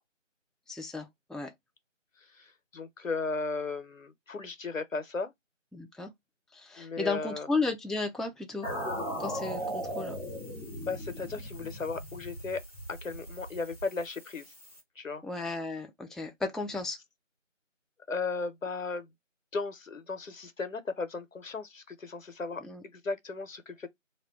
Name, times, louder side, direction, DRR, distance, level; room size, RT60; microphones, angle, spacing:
voice 1, 0.7-1.5 5.7-6.1 6.5-8.7 9.2-10.2 15.2-17.0 22.6-22.8, left 3 dB, ahead, 0.3 m, -34 dB
voice 2, 2.3-5.3 6.8-7.5 10.8-12.6 12.9-14.5 15.0-15.2 18.1-19.1 19.5-22.6 22.9-23.9, left 4 dB, 80° left, 0.7 m, -36 dB
sound 1, 8.6-14.8, equal, 30° right, 1.1 m, -38 dB
2.2 x 2.1 x 3.6 m
figure-of-eight pair, 170°, 39 cm